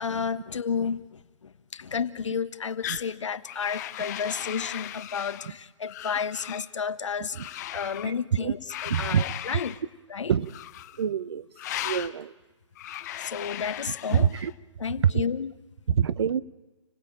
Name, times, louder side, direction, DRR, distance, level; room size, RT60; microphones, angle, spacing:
voice 1, 0.0-7.4 7.7-9.8 10.1-10.3 13.2-14.3 14.8-15.5, left 6 dB, 75° left, 11 dB, 1.4 m, -31 dB
sound 1, 2.8-3.1 3.5-5.5 5.9-6.7 7.3-8.1 8.7-9.8 10.5-11.0 11.6-12.1 12.8-14.5, left 13 dB, 35° left, 0.9 m, -37 dB
voice 2, 8.9-9.2 10.3-10.5 11.0-11.5 11.8-12.3 14.1-14.5 15.0-15.2 15.9-16.4, right 8 dB, 55° right, 17 dB, 0.9 m, -25 dB
29.5 x 17.5 x 8.8 m, 1.2 s
hypercardioid pair, 145°, 16 cm